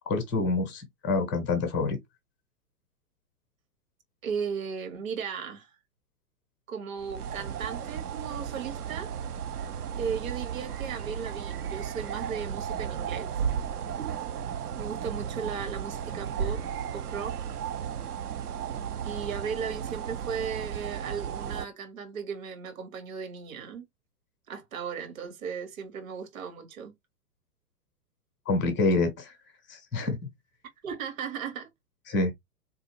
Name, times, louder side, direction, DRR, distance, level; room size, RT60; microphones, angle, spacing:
voice 1, 0.1-2.0 28.5-29.3 29.7-30.2 32.1-32.3, left 3 dB, 5° left, 0.3 m, -27 dB
voice 2, 4.2-5.7 6.7-9.1 10.0-13.3 14.8-16.6 16.9-17.4 19.0-23.9 24.5-26.9 30.8-31.7, right 6 dB, 60° right, 1.9 m, -36 dB
sound 1, 7.0-21.7, right 8 dB, 75° right, 0.7 m, -34 dB
4.0 x 3.4 x 3.1 m
figure-of-eight pair, 110°, 46 cm